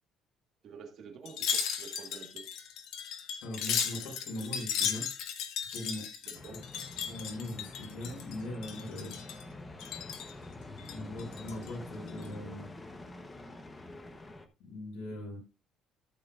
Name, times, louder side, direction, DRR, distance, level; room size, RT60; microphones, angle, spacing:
voice 1, 0.6-2.5 6.2-6.7 15.1-15.2, right 6 dB, 45° right, 1.6 m, -49 dB
Wind chime, 1.3-8.4 8.6-9.4 9.8-10.3 10.8-11.7 12.1-12.3, left 7 dB, 65° left, 2.0 m, -36 dB
voice 2, 3.4-5.1 5.7-6.6 7.1-9.2 10.9-12.7 14.6-15.4, left 1 dB, 85° left, 5.1 m, -40 dB
sound 1, 6.3-14.5, left 2 dB, 15° left, 0.9 m, -46 dB
14.0 x 7.7 x 2.5 m
cardioid pair, 180°, 0 cm